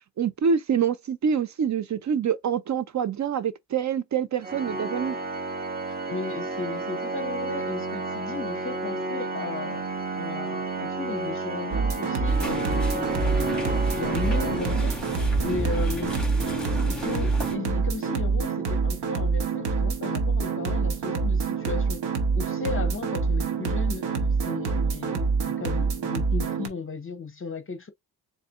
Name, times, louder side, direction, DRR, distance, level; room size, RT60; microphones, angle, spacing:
voice 1, 0.2-5.2, right 7 dB, 45° right, 0.7 m, -26 dB
Organ, 4.4-15.4, right 2 dB, 20° right, 1.0 m, -32 dB
voice 2, 5.9-9.8 10.2-16.2 16.9-22.0 22.3-27.9, left 4 dB, 30° left, 0.8 m, -35 dB
sound 1, 11.7-26.7, right 4 dB, 80° right, 1.2 m, -26 dB
sound 2, 12.2-17.5, left 2 dB, ahead, 1.9 m, -33 dB
4.2 x 3.4 x 2.5 m
cardioid pair, 80°, 41 cm